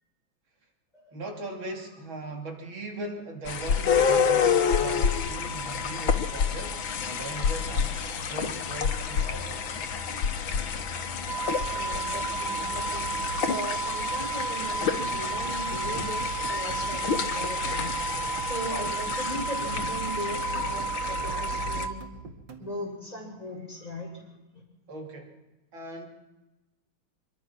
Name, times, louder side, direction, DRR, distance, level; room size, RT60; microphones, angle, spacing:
voice 1, 1.1-8.0 8.3-9.9 24.9-25.3 25.7-26.1, right 2 dB, 90° right, 2 dB, 3.7 m, -39 dB
sound 1, 3.5-21.9, left 6 dB, 85° left, 2.0 m, -29 dB
sound 2, 11.3-21.9, right 6 dB, 15° right, 0.8 m, -33 dB
voice 2, 11.7-13.1 13.4-18.0 18.4-22.0 22.6-24.4, equal, 20° left, -1 dB, 6.6 m, -38 dB
sound 3, 15.0-22.7, right 5 dB, 70° right, 2.6 m, -45 dB
26.0 x 22.0 x 6.1 m, 1.1 s
omnidirectional pair, 2.1 m